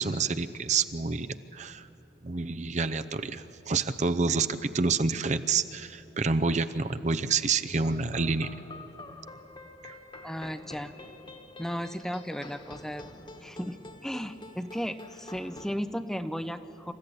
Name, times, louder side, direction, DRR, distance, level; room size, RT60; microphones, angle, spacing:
voice 1, 0.0-1.9 2.2-8.5 9.8-10.0, right 4 dB, 40° right, 10 dB, 0.7 m, -28 dB
sound 1, 7.7-15.8, left 2 dB, 25° left, 1.5 m, -47 dB
voice 2, 10.2-10.9 11.6-13.0 13.4-13.8 14.0-16.9, equal, 5° left, 10 dB, 0.7 m, -35 dB
28.0 x 14.5 x 9.9 m, 2.8 s
head